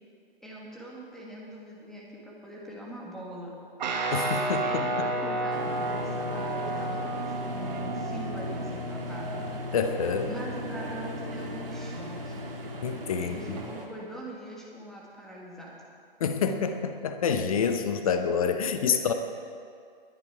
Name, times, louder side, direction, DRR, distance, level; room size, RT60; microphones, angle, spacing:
voice 1, 0.4-3.6 4.6-9.4 10.3-12.5 13.2-15.8, right 1 dB, ahead, -4 dB, 1.8 m, -42 dB
Guitar, 3.8-13.6, right 1 dB, 50° right, 1.7 m, -33 dB
voice 2, 4.1-4.8 9.7-10.3 12.8-13.6 16.2-19.1, left 6 dB, 35° left, 8 dB, 0.9 m, -27 dB
sound 1, 5.5-13.9, right 3 dB, 65° right, 2.3 m, -39 dB
21.5 x 10.0 x 4.7 m, 2.3 s
figure-of-eight pair, 135°, 30 cm